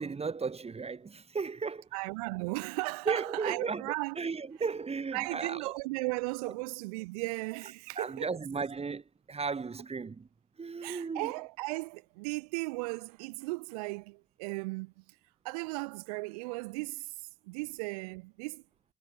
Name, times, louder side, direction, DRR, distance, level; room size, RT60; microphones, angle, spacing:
voice 1, 0.0-1.9 3.1-5.7 6.5-6.6 8.0-10.3 10.6-11.3, right 5 dB, 30° right, 1.7 m, -35 dB
voice 2, 1.9-4.2 5.1-8.3 10.8-15.1 15.4-18.6, right 27 dB, 80° right, 4.4 m, -36 dB
figure-of-eight pair, 45°, 19 cm